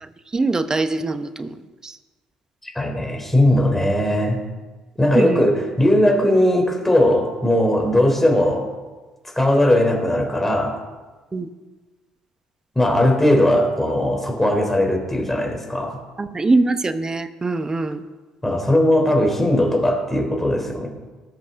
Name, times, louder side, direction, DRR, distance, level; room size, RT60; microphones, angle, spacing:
voice 1, 0.0-2.0 5.1-5.5 11.3-11.5 16.2-18.0, right 3 dB, 25° right, 11 dB, 1.0 m, -23 dB
voice 2, 2.6-4.4 5.0-8.7 9.4-10.8 12.8-16.0 18.4-20.9, left 1 dB, 10° left, 1 dB, 3.6 m, -18 dB
20.0 x 7.7 x 3.8 m, 1.3 s
hypercardioid pair, 60°, 2 cm